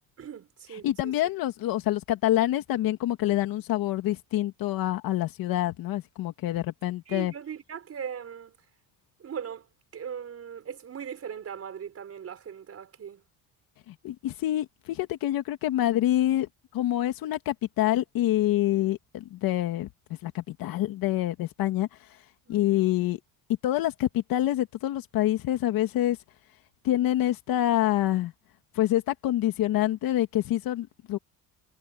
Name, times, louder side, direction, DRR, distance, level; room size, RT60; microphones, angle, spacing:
voice 1, 0.2-1.1 7.1-8.6 9.2-9.7 9.9-13.2 22.5-22.7, right 8 dB, 40° right, 5.7 m, -39 dB
voice 2, 0.8-7.3 13.9-19.9 20.2-21.9 22.5-23.2 23.6-26.2 26.8-28.3 28.7-31.2, left 13 dB, 70° left, 2.5 m, -26 dB
cardioid pair, 120°, 36 cm